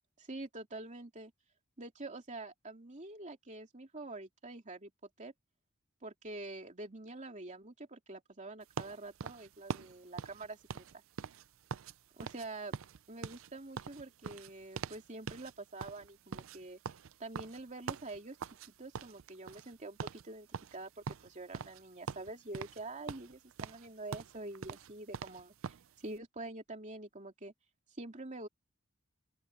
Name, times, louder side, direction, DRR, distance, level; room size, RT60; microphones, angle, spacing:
voice 1, 0.2-1.3 1.8-4.9 5.2-5.3 6.0-11.0 12.1-12.7 13.1-16.8 17.2-27.5 27.9-28.5, right 2 dB, 35° right, 3.0 m, -46 dB
sound 1, 8.8-11.9 12.2-12.5 12.7-15.0 15.3-15.5 15.8-18.7 18.9-19.7 20.0-20.2 20.5-21.8 22.1-22.8 23.1-25.9, right 6 dB, 70° right, 0.5 m, -43 dB
open air
head